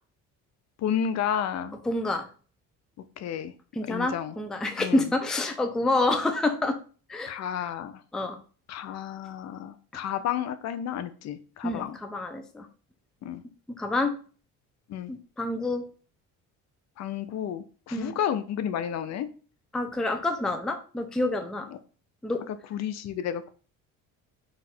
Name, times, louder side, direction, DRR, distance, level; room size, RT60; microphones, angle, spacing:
voice 1, 0.8-1.7 3.2-3.5 3.9-4.3 4.8-5.1 7.3-8.0 8.7-12.0 13.2-13.4 14.9-15.1 17.0-19.3 22.5-23.5, left 9 dB, 55° left, 11 dB, 0.5 m, -31 dB
voice 2, 1.9-2.3 3.8-6.8 7.1-7.4 8.1-8.4 11.6-12.7 13.7-14.1 15.1-15.9 17.9-18.1 19.7-21.7 22.2-22.4, left 2 dB, ahead, 6 dB, 0.4 m, -28 dB
4.0 x 2.5 x 4.3 m, 0.39 s
cardioid pair, 115°, 33 cm